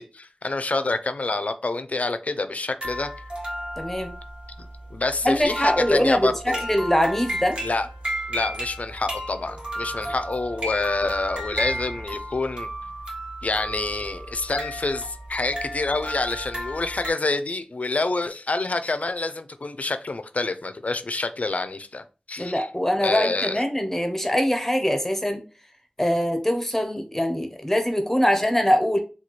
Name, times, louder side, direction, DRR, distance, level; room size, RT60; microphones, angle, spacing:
voice 1, 0.0-3.1 4.9-6.6 7.6-7.9 8.3-12.7 13.4-22.7 23.0-23.6, left 3 dB, 70° left, 0.4 m, -27 dB
sound 1, 2.8-17.1, equal, 40° right, 1.4 m, -33 dB
voice 2, 3.8-4.1 5.2-7.6 22.4-25.4 26.0-29.0, equal, 15° left, 0.6 m, -23 dB
4.1 x 2.3 x 3.0 m
wide cardioid pair, 60°, 3 cm